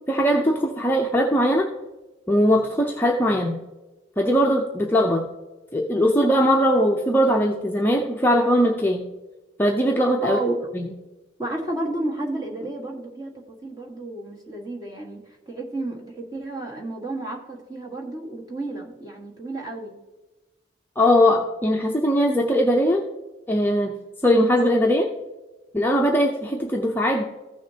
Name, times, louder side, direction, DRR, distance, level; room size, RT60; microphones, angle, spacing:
voice 1, 0.1-1.7 2.3-3.6 4.2-5.2 5.7-9.1 9.6-10.4 10.7-10.9 21.0-23.0 23.5-24.0 24.2-25.1 25.7-27.2, equal, 10° left, 0 dB, 0.5 m, -20 dB
voice 2, 10.2-10.7 11.4-13.3 13.6-15.2 15.5-20.0, right 2 dB, 20° right, -1 dB, 1.5 m, -31 dB
15.0 x 6.4 x 2.8 m, 1.1 s
head